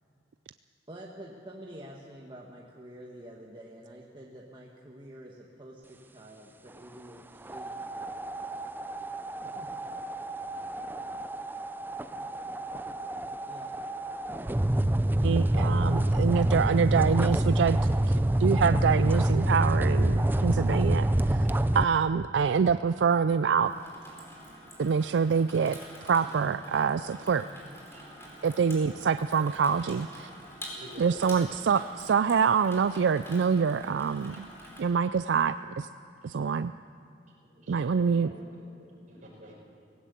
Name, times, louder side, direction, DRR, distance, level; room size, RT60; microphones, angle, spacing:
voice 1, 0.9-7.7 9.4-9.7 12.2-12.3 13.4-13.7 27.3-27.8 29.8-30.0, right 1 dB, 25° right, -2 dB, 1.5 m, -48 dB
sound 1, 7.5-21.8, right 1 dB, 10° right, 0.5 m, -27 dB
voice 2, 15.2-17.8 18.1-21.5 21.7-23.7 24.8-25.8 26.0-27.5 28.4-30.3 31.0-34.5 34.8-35.9 36.2-36.7 37.7-38.3, right 6 dB, 75° right, 12 dB, 0.4 m, -26 dB
voice 3, 21.4-22.0 22.6-22.7 26.2-26.3 27.9-28.0 28.3-28.5 29.0-29.5 30.6-31.2 34.9-35.0 37.6-38.5 38.8-39.5, equal, 45° right, -3 dB, 6.1 m, -50 dB
Water tap faucet / Sink (filling or washing), 23.6-34.8, equal, 15° left, 4.9 m, -47 dB
19.0 x 17.0 x 8.1 m, 2.7 s
head